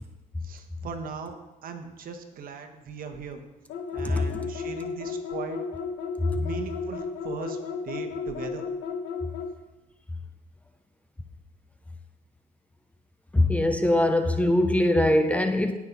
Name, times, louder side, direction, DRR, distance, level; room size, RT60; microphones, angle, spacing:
voice 1, 0.4-1.3 1.6-3.4 3.9-5.6 6.4-7.6 7.8-8.6, right 5 dB, 55° right, 5 dB, 1.4 m, -38 dB
sound 1, 3.7-9.5, left 5 dB, 80° left, 1.4 m, -33 dB
voice 2, 13.3-15.7, left 1 dB, 10° left, 7 dB, 0.8 m, -21 dB
17.5 x 6.1 x 4.1 m, 1.1 s
cardioid pair, 110°, 17 cm